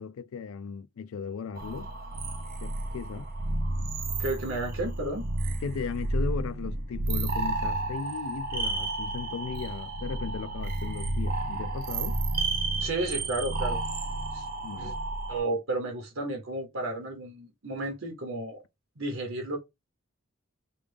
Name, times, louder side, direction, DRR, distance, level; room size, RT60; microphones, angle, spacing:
voice 1, 0.0-1.9 2.6-3.3 5.6-12.2 14.6-15.0, left 6 dB, 85° left, 0.4 m, -37 dB
sound 1, 1.6-15.4, right 2 dB, 45° right, 0.7 m, -31 dB
voice 2, 4.2-5.3 12.8-13.8 14.3-14.4 14.8-14.9 15.3-18.6 19.0-19.6, right 2 dB, 70° right, 1.1 m, -32 dB
3.3 x 2.4 x 3.3 m
head